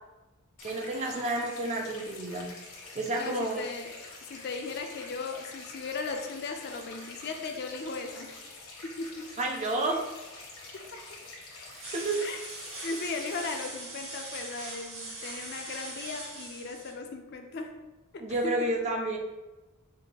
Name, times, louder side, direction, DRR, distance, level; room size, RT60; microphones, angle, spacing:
sound 1, 0.6-13.6, left 3 dB, 85° left, 1.1 m, -47 dB
voice 1, 0.6-2.5 2.9-3.6 9.4-10.0 11.7-12.2 18.2-19.2, right 2 dB, 30° right, 2 dB, 0.4 m, -30 dB
voice 2, 3.2-8.4 8.8-9.3 10.7-11.2 12.2-12.4 12.8-17.8 18.1-18.7, left 3 dB, 50° left, 4 dB, 0.4 m, -37 dB
sound 2, 11.8-16.9, right 2 dB, 70° right, 1.5 m, -41 dB
4.4 x 2.5 x 2.8 m, 1.1 s
head